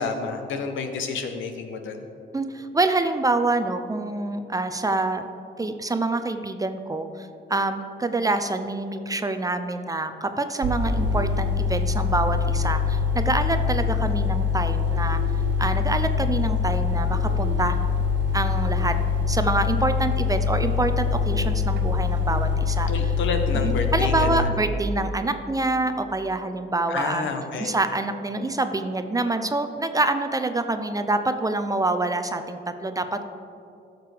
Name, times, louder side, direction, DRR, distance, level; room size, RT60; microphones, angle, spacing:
voice 1, 0.0-2.1 22.9-24.6 26.9-27.7, left 4 dB, 75° left, 6 dB, 1.0 m, -29 dB
voice 2, 2.3-5.2 5.6-15.2 15.6-17.8 18.3-18.9 19.3-22.9 23.5-27.3 27.6-33.3, right 2 dB, 15° right, 8 dB, 0.5 m, -26 dB
sound 1, 10.6-24.4, left 5 dB, 65° right, 0.7 m, -24 dB
13.5 x 6.7 x 3.4 m, 2.7 s
cardioid pair, 90°, 20 cm